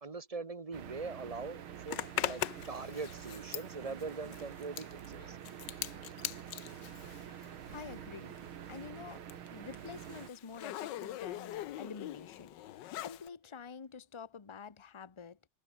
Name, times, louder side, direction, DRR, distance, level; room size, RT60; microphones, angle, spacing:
voice 1, 0.0-5.4, right 4 dB, 30° right, 0.7 m, -42 dB
sound 1, 0.7-10.3, right 9 dB, 80° right, 2.2 m, -47 dB
Zipper (clothing), 1.9-8.1 8.3-13.3, left 13 dB, 65° left, 1.3 m, -42 dB
voice 2, 7.7-8.3 8.7-9.2 9.5-15.4, left 5 dB, 30° left, 0.5 m, -48 dB
omnidirectional pair, 2.3 m